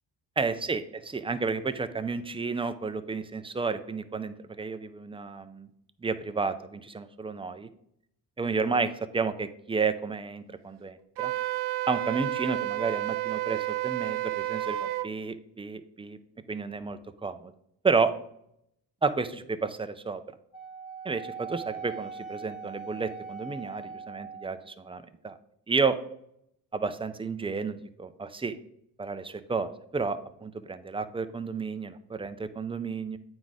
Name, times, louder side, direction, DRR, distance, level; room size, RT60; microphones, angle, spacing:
voice 1, 0.4-5.7 6.0-7.7 8.4-11.3 11.9-16.2 16.5-17.5 17.8-18.1 19.0-20.2 21.0-25.4 25.7-26.0 26.7-28.6 29.0-33.2, right 4 dB, 15° right, 10 dB, 0.4 m, -31 dB
Wind instrument woodwind instrument, 11.2-15.1, right 15 dB, 70° right, 0.5 m, -31 dB
Wind instrument woodwind instrument 2, 20.5-24.7, right 5 dB, 50° left, 1.4 m, -41 dB
8.8 x 4.8 x 4.0 m, 0.73 s
cardioid pair, 115°, 43 cm